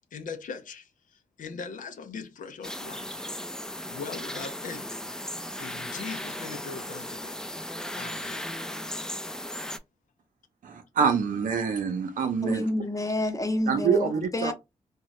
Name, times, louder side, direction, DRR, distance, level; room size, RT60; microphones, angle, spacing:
voice 1, 0.1-3.4 3.8-4.9 5.6-7.4 7.9-8.8 12.5-12.6, left 5 dB, 75° left, 0.5 m, -40 dB
sound 1, 2.6-9.8, left 1 dB, 5° left, 0.4 m, -36 dB
voice 2, 10.6-12.6 13.7-14.5, right 6 dB, 85° right, 0.6 m, -26 dB
voice 3, 12.4-14.5, left 1 dB, 25° left, 0.8 m, -28 dB
2.7 x 2.2 x 3.0 m
cardioid pair, 50°, 13 cm